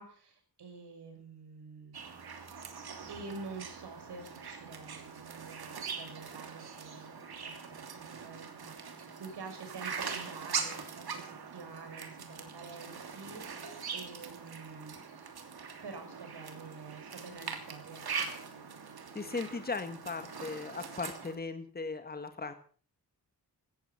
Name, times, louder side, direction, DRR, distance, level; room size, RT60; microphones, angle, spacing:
voice 1, 0.0-2.0 3.1-15.0 15.8-18.3, right 4 dB, 85° right, 5 dB, 5.9 m, -48 dB
sound 1, 1.9-21.3, right 6 dB, 70° right, 3.0 m, -42 dB
voice 2, 19.1-22.5, left 3 dB, 25° left, 8 dB, 1.6 m, -38 dB
17.0 x 14.0 x 5.7 m, 0.43 s
wide cardioid pair, 175°, 39 cm